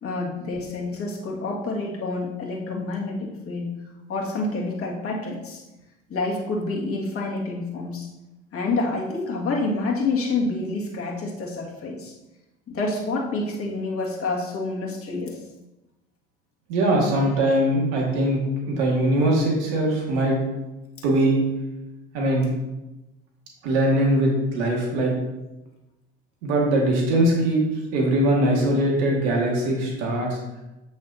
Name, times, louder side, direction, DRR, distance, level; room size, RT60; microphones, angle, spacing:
voice 1, 0.0-3.7 4.1-5.6 6.1-8.1 8.5-12.1 12.7-15.4, left 3 dB, 40° left, -2 dB, 2.1 m, -28 dB
voice 2, 16.7-20.4 21.0-21.4 22.1-22.5 23.6-25.1 26.4-27.6 27.9-30.4, right 1 dB, 70° right, -2 dB, 2.0 m, -21 dB
7.9 x 6.2 x 2.8 m, 1.0 s
hypercardioid pair, 65°, 33 cm